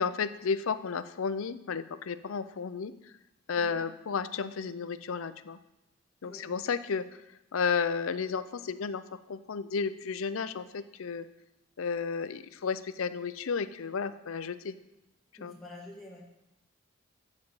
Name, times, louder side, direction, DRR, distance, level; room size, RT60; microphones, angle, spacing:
voice 1, 0.0-2.9 3.5-5.6 6.2-7.1 7.5-11.3 11.8-14.7 15.4-15.5, left 5 dB, 75° left, 13 dB, 0.5 m, -32 dB
voice 2, 15.4-16.2, left 2 dB, ahead, -5 dB, 2.0 m, -47 dB
10.5 x 5.3 x 7.0 m, 0.93 s
head